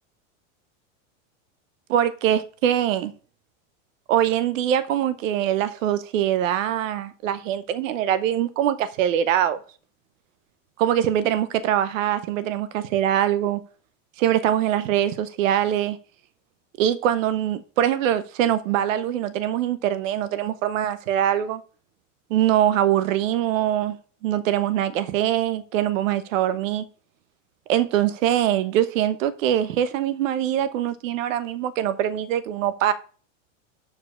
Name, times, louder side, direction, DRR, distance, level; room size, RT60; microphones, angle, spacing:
voice 1, 1.9-3.1 4.1-9.6 10.8-13.6 14.2-16.0 16.8-21.6 22.3-24.0 24.2-26.9 27.7-32.9, right 11 dB, 80° right, 0.8 m, -23 dB
6.9 x 4.7 x 6.4 m
supercardioid pair, 165°, 39 cm